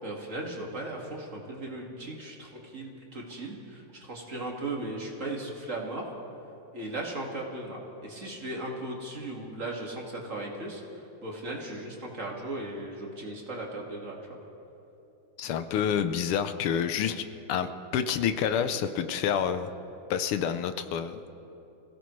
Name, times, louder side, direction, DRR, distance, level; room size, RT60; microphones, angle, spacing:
voice 1, 0.0-6.1 6.7-14.4, right 2 dB, 35° right, -1 dB, 2.2 m, -37 dB
voice 2, 15.4-19.7 20.1-21.2, left 8 dB, 85° left, 10 dB, 1.7 m, -28 dB
27.5 x 16.5 x 3.2 m, 3.0 s
omnidirectional pair, 2.4 m